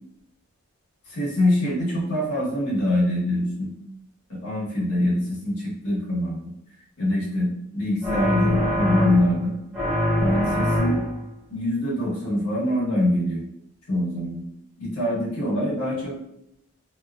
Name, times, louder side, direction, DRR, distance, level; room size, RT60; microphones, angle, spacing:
voice 1, 1.1-3.7 4.3-6.5 7.0-9.5 10.2-11.0 11.5-13.4 13.9-14.4 14.8-16.1, left 1 dB, 90° left, -6 dB, 1.1 m, -24 dB
sound 1, 8.0-9.4 9.7-11.3, equal, ahead, 0.7 m, -23 dB
2.7 x 2.3 x 2.3 m, 0.79 s
head